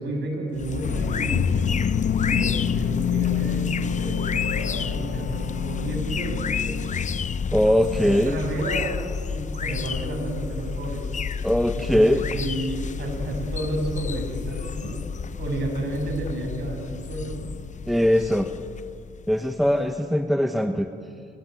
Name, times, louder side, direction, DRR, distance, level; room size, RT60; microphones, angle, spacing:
voice 1, 0.0-1.5 2.2-6.9 8.0-9.0 9.3-11.3 11.7-12.0 12.3-15.0 15.4-17.3, right 1 dB, 60° right, 2 dB, 6.9 m, -31 dB
sound 1, 0.6-20.0, left 6 dB, 40° left, 0.8 m, -31 dB
sound 2, 0.8-8.5, left 8 dB, 55° left, 1.2 m, -28 dB
voice 2, 7.5-8.4 11.4-12.2 17.9-18.5 19.3-20.9, equal, ahead, 7 dB, 1.1 m, -21 dB
28.5 x 17.0 x 9.2 m, 2.3 s
cardioid pair, 90°, 20 cm